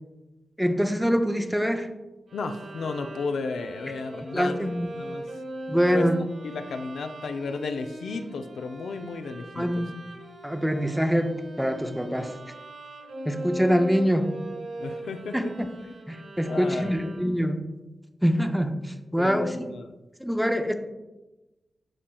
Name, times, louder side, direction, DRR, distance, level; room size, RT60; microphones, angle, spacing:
voice 1, 0.6-1.9 4.3-4.9 5.7-6.2 9.6-10.0 10.4-12.3 13.3-14.4 15.3-15.7 16.1-17.6 18.2-19.5 20.2-20.7, equal, ahead, 7 dB, 0.4 m, -25 dB
voice 2, 2.3-5.2 5.9-6.1 6.4-9.8 14.8-15.5 15.8-17.1 19.2-19.9, left 4 dB, 90° left, 7 dB, 0.5 m, -34 dB
Bowed string instrument, 2.3-17.6, right 1 dB, 85° right, 1.4 m, -40 dB
12.5 x 4.3 x 2.3 m, 1.1 s
wide cardioid pair, 155°, 0 cm